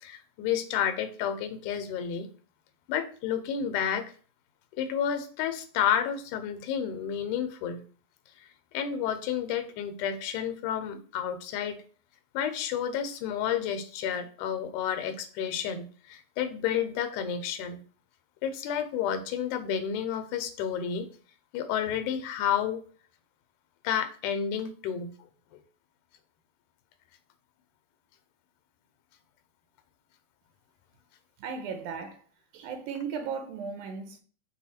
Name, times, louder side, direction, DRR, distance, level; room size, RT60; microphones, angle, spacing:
voice 1, 0.0-2.3 2.9-4.0 4.8-7.8 8.7-11.8 12.3-17.8 18.4-21.1 21.5-22.8 23.8-25.1, left 8 dB, 85° left, 2.1 m, -30 dB
voice 2, 31.4-32.2 32.5-34.2, right 6 dB, 90° right, 2.2 m, -36 dB
5.5 x 2.2 x 4.2 m
omnidirectional pair, 3.5 m